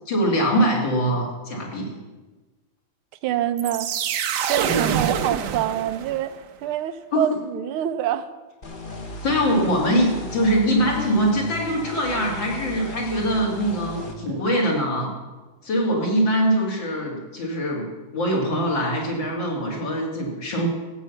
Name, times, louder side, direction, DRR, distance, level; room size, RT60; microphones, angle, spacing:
voice 1, 0.1-1.9 4.7-5.0 7.1-7.2 9.2-15.1 15.6-20.7, equal, 60° left, -2 dB, 3.5 m, -23 dB
voice 2, 3.2-3.9 4.4-6.3 6.6-8.3 14.3-14.4, right 11 dB, 85° right, 12 dB, 1.6 m, -26 dB
sound 1, 3.6-6.4, right 8 dB, 65° right, 1.2 m, -26 dB
sound 2, 8.6-14.1, left 1 dB, 30° left, 1.0 m, -35 dB
15.5 x 8.2 x 5.8 m, 1.2 s
omnidirectional pair, 2.3 m